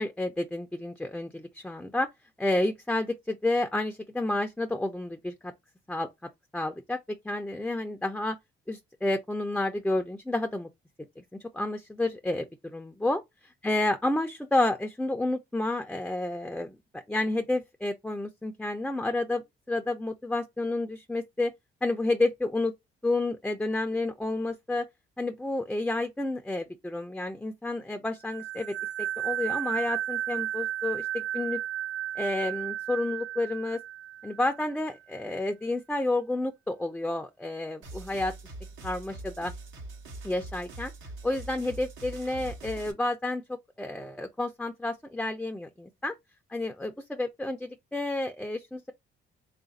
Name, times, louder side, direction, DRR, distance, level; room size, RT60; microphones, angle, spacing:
voice 1, 0.0-2.1 2.4-5.5 5.9-6.1 6.5-7.0 7.2-8.4 8.7-10.7 11.2-11.3 11.5-13.2 13.6-16.8 17.1-19.4 19.7-21.5 21.8-22.7 23.0-24.9 25.2-28.7 29.2-31.6 32.2-33.8 34.2-38.3 38.8-39.5 40.2-40.9 41.2-46.1 46.5-48.9, left 2 dB, 5° left, 0.4 m, -30 dB
sound 1, 28.2-34.7, right 12 dB, 60° right, 0.7 m, -33 dB
sound 2, 37.8-42.9, right 2 dB, 80° right, 1.1 m, -43 dB
3.4 x 2.5 x 3.9 m
cardioid pair, 90°, 20 cm